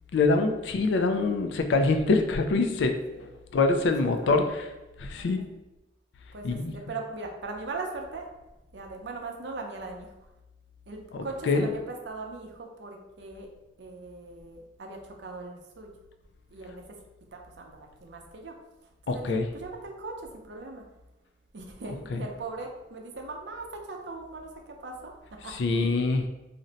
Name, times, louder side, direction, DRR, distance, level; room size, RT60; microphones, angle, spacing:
voice 1, 0.1-2.9 3.5-4.7 5.0-5.4 6.4-6.7 11.1-11.7 19.1-19.4 22.1-22.2 25.5-26.2, left 3 dB, 85° left, 6 dB, 0.4 m, -24 dB
voice 2, 4.2-4.5 5.2-5.5 6.3-8.3 8.7-10.1 10.9-13.5 13.8-15.9 16.5-16.8 17.3-18.5 19.1-20.8 21.5-26.0, right 3 dB, 75° right, 1 dB, 0.6 m, -40 dB
2.5 x 2.1 x 3.9 m, 1.0 s
head